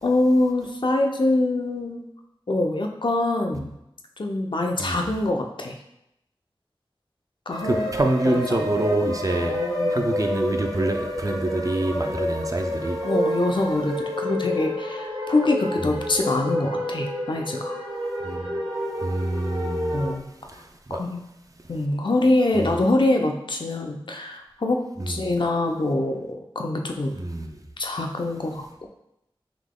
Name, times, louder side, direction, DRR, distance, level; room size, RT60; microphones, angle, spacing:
voice 1, 0.0-2.1 2.5-3.7 4.2-5.8 7.5-7.8 8.3-8.7 9.4-10.1 13.0-17.8 19.9-20.2 20.9-21.2 21.7-27.1 27.8-28.9, left 2 dB, 60° left, 3 dB, 0.5 m, -24 dB
voice 2, 4.8-5.1 7.6-13.0 15.8-16.0 18.2-18.6 19.0-20.1 20.4-21.0 22.5-22.8 25.0-25.3 27.2-27.6, right 1 dB, 40° right, 3 dB, 0.5 m, -27 dB
sound 1, 7.5-20.1, equal, 60° right, 1.0 m, -29 dB
3.8 x 3.0 x 3.6 m, 0.82 s
wide cardioid pair, 60°, 9 cm